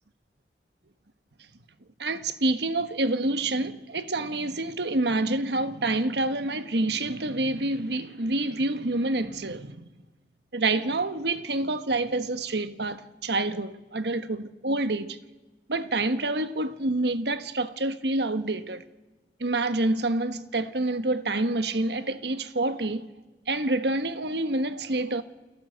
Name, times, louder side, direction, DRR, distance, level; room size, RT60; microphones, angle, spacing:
voice 1, 2.0-9.8 10.5-15.2 15.7-18.8 19.4-23.1 23.5-25.2, right 2 dB, 75° right, 1.4 m, -27 dB
29.5 x 18.0 x 8.1 m
head